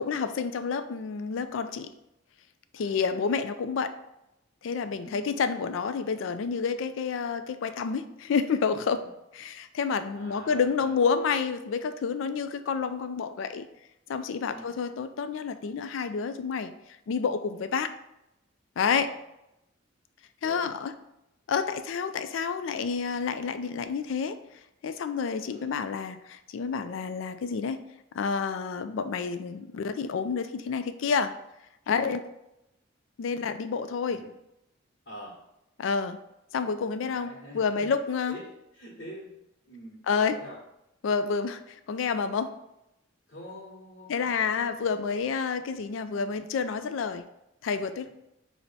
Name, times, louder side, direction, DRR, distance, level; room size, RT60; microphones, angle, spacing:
voice 1, 0.0-1.9 2.7-3.9 4.6-9.0 9.3-13.7 14.1-16.7 17.1-17.9 18.8-19.1 20.4-20.9 21.5-24.4 24.8-27.8 28.1-31.3 31.9-32.2 33.2-34.2 35.8-36.2 36.5-38.4 40.1-40.4 41.0-42.5 44.1-47.2 47.6-48.1, left 5 dB, 70° left, 10 dB, 0.3 m, -29 dB
voice 2, 2.7-3.2 5.0-5.3 8.9-9.1 10.1-10.9 14.5-14.7 18.9-19.1 20.4-20.7 25.5-25.8 31.9-32.1 34.0-34.3 35.0-35.4 37.0-37.9 38.3-39.4 39.7-40.6 43.3-44.3 48.0-48.1, equal, 50° left, -7 dB, 1.1 m, -45 dB
5.8 x 2.1 x 4.0 m, 0.86 s
head